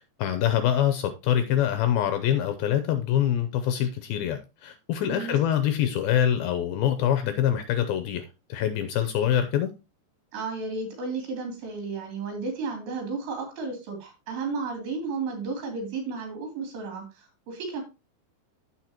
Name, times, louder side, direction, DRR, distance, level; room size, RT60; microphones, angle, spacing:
voice 1, 0.0-8.2 8.5-9.7, left 10 dB, 80° left, 2.2 m, -25 dB
voice 2, 5.1-5.4 10.3-17.8, right 4 dB, 75° right, 5.2 m, -33 dB
15.0 x 5.0 x 2.9 m
omnidirectional pair, 4.9 m